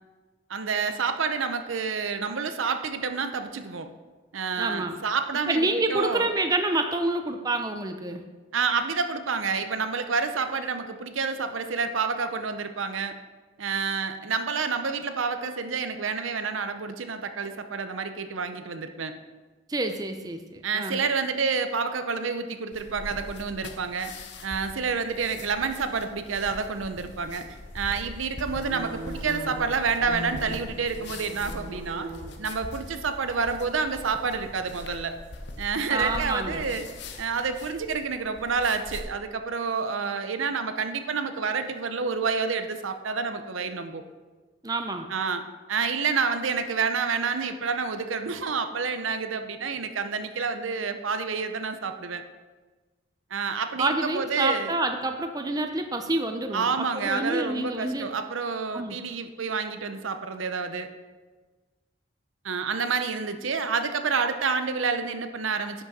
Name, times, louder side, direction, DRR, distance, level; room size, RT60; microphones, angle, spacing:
voice 1, 0.5-3.9 4.3-6.3 8.5-13.1 13.6-19.1 20.6-24.1 24.4-27.4 27.7-32.1 32.4-35.2 35.6-36.9 37.2-44.0 45.1-52.2 53.3-54.8 56.5-60.9 62.4-65.8, right 5 dB, 85° right, 8 dB, 0.7 m, -29 dB
voice 2, 4.6-5.0 5.5-8.2 19.7-21.0 35.9-36.6 44.6-45.1 53.8-56.7 56.9-58.1 58.7-59.0, right 2 dB, 20° right, 6 dB, 0.5 m, -28 dB
sound 1, 22.7-39.0, left 2 dB, 60° left, 0.8 m, -42 dB
sound 2, 24.7-37.6, equal, 15° left, 2.5 m, -44 dB
10.0 x 6.1 x 4.1 m, 1.3 s
head